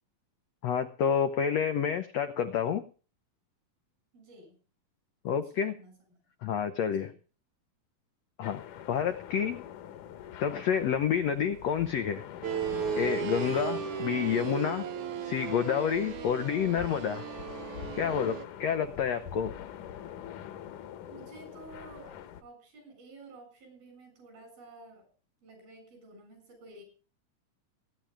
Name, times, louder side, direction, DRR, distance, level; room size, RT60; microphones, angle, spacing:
voice 1, 0.6-2.8 5.2-5.7 6.4-7.1 8.4-9.6 10.4-12.2 13.0-14.8 15.2-17.3 17.9-19.5, left 8 dB, 85° left, 9 dB, 1.4 m, -29 dB
voice 2, 4.1-4.6 5.3-5.9 6.9-7.2 21.1-25.1 25.4-26.8, right 2 dB, 85° right, 6 dB, 9.0 m, -52 dB
sound 1, 8.4-22.4, left 10 dB, 70° left, 2.4 m, -44 dB
sound 2, 12.4-18.4, right 9 dB, 65° right, 2.3 m, -35 dB
25.5 x 10.5 x 3.5 m, 0.37 s
omnidirectional pair, 4.1 m